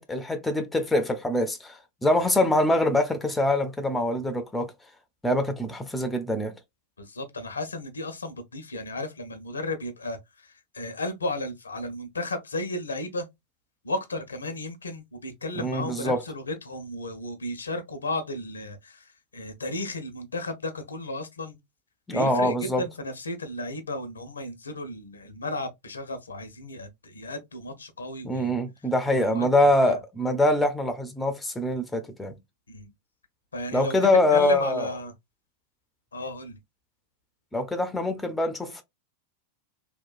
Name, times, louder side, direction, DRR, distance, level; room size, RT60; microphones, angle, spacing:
voice 1, 0.0-4.7 5.2-6.5 15.5-16.2 22.1-22.8 28.2-32.4 33.7-34.9 37.5-38.8, left 1 dB, 10° left, 0.5 m, -24 dB
voice 2, 7.0-13.3 13.8-21.6 22.1-28.5 29.2-29.5 29.8-30.0 32.7-32.9 33.5-34.0 34.3-35.1 36.1-36.6, left 1 dB, 75° left, 0.5 m, -34 dB
2.8 x 2.1 x 2.3 m
figure-of-eight pair, 90°, 0 cm